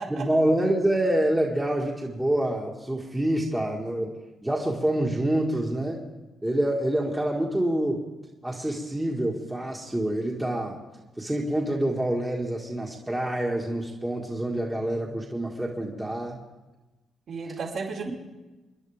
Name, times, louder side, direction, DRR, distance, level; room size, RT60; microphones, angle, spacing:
voice 1, 0.1-4.1 4.4-6.0 6.4-8.0 8.4-10.8 11.2-16.4 18.1-18.2, right 1 dB, 10° right, -2 dB, 1.9 m, -26 dB
voice 2, 17.3-18.1, right 4 dB, 65° right, -4 dB, 4.8 m, -33 dB
29.0 x 10.5 x 3.6 m, 1.1 s
cardioid pair, 90°, 0 cm